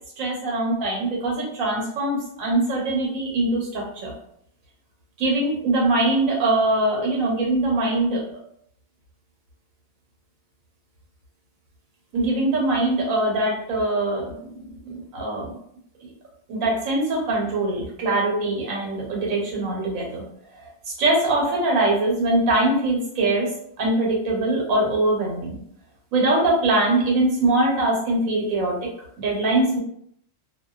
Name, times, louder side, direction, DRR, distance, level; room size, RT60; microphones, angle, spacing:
voice 1, 0.2-4.1 5.2-8.2 12.1-14.3 14.8-15.5 16.5-20.2 20.6-23.5 23.8-25.6 26.1-28.8 29.2-29.8, right 2 dB, 90° right, -2 dB, 1.2 m, -22 dB
2.5 x 2.2 x 2.3 m, 0.69 s
omnidirectional pair, 1.4 m